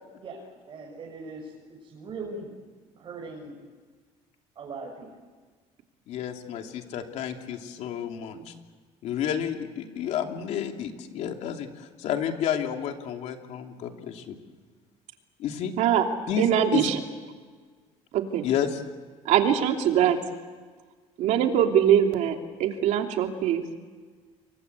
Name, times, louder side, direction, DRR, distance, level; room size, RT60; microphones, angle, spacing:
voice 1, 0.2-2.5 3.0-3.5 4.6-5.1, right 3 dB, 40° right, -1 dB, 6.5 m, -40 dB
voice 2, 6.1-8.5 9.0-14.4 15.4-15.7 16.3-16.9 18.4-18.8, left 8 dB, 60° left, 4 dB, 3.0 m, -30 dB
voice 3, 16.4-17.0 18.1-18.4 19.2-20.2 21.2-23.6, right 9 dB, 65° right, 4 dB, 3.1 m, -22 dB
28.5 x 23.5 x 8.3 m, 1.5 s
cardioid pair, 140°, 13 cm